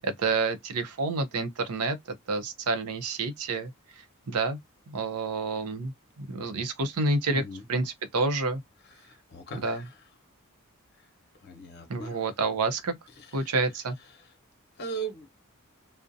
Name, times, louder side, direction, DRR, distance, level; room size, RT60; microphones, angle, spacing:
voice 1, 0.0-2.0 2.3-4.6 4.9-7.4 7.7-8.6 9.5-9.8 11.9-12.9 13.3-14.0, right 3 dB, 85° right, 0.6 m, -29 dB
voice 2, 7.3-7.6 9.0-10.0 11.4-12.2 13.2-13.5 14.2-14.3 14.8-15.3, right 3 dB, 50° left, 0.8 m, -39 dB
2.4 x 2.1 x 2.5 m
head